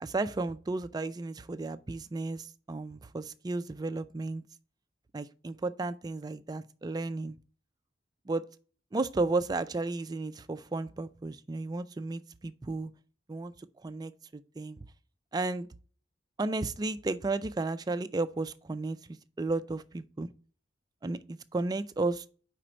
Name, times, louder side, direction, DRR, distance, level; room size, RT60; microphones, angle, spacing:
voice 1, 0.0-4.4 5.1-7.4 8.3-8.4 8.9-12.9 13.3-13.5 13.8-14.8 15.3-15.7 16.4-20.3 21.0-22.3, right 3 dB, 20° right, 0.3 m, -33 dB
5.1 x 4.4 x 6.1 m
head